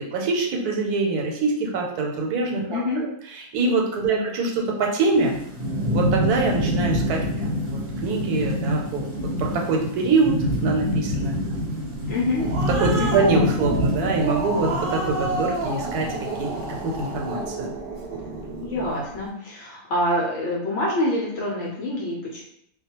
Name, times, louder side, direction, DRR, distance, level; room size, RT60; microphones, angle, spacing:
voice 1, 0.0-2.8 3.3-5.4 5.9-11.9 12.8-16.5 16.8-17.7, right 3 dB, 85° right, 0 dB, 1.1 m, -24 dB
voice 2, 2.7-3.1 4.1-4.2 12.1-12.5 13.0-13.3 18.6-22.4, left 1 dB, 65° left, -3 dB, 0.7 m, -26 dB
Thunderstorm / Rain, 5.1-17.4, equal, 45° right, 0.9 m, -27 dB
Growling, 12.1-18.9, right 3 dB, 65° right, 0.5 m, -30 dB
2.3 x 2.2 x 2.9 m, 0.72 s
omnidirectional pair, 1.6 m